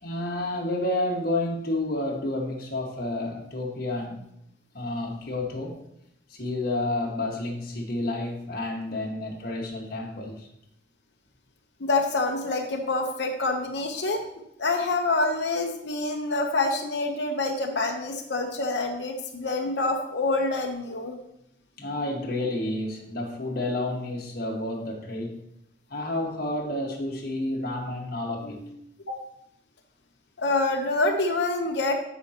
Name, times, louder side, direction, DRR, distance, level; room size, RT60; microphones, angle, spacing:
voice 1, 0.0-4.2 4.7-5.8 6.3-10.5 21.8-25.4 25.9-28.6, left 1 dB, 60° left, 0 dB, 1.7 m, -30 dB
voice 2, 11.8-14.2 14.6-21.2 28.4-28.7 29.1-29.2 30.4-31.9, left 2 dB, 80° left, 1 dB, 1.0 m, -26 dB
13.0 x 5.5 x 3.0 m, 0.77 s
head